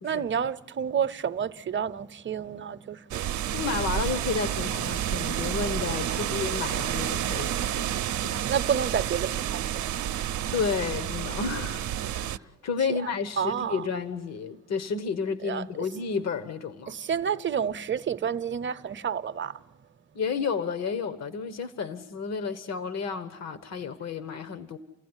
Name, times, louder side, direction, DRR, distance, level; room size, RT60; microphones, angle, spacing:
voice 1, 0.0-3.3 6.1-6.4 8.5-10.1 12.9-13.0 13.4-13.8 15.4-15.7 16.9-19.6, right 8 dB, 40° right, 0.8 m, -30 dB
sound 1, 3.1-12.4, right 11 dB, 70° right, 0.7 m, -30 dB
voice 2, 3.5-8.0 8.2-8.4 10.5-16.9 20.1-24.8, left 5 dB, 60° left, 1.3 m, -31 dB
29.5 x 15.5 x 9.8 m
cardioid pair, 90°, 30 cm